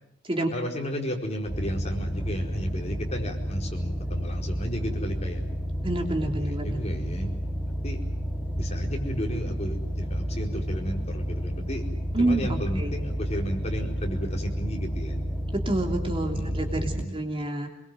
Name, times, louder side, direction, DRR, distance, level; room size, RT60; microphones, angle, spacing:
voice 1, 0.5-5.4 6.2-7.4 7.8-8.0 8.5-11.8 12.2-15.2 16.3-17.2, equal, 35° left, 1 dB, 4.6 m, -33 dB
sound 1, 1.4-17.0, equal, 5° right, 3.2 m, -31 dB
voice 2, 5.8-6.8 12.1-12.9 15.5-17.7, right 2 dB, 30° right, 3 dB, 3.1 m, -28 dB
26.5 x 22.5 x 7.6 m, 0.76 s
head